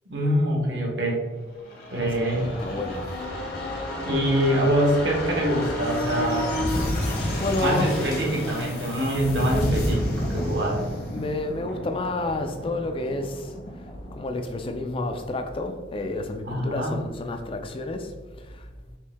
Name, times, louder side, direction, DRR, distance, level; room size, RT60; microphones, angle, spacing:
voice 1, 0.1-1.2 1.9-2.4 4.0-6.5 7.6-10.8 16.4-16.9, right 1 dB, 70° right, 1.1 m, -24 dB
sound 1, 1.6-15.1 15.4-15.5, left 1 dB, 55° left, 1.1 m, -30 dB
voice 2, 2.3-3.1 7.1-7.9 11.1-13.5 14.1-18.1 18.5-18.7, left 2 dB, 30° left, 0.4 m, -30 dB
4.4 x 2.7 x 3.5 m
head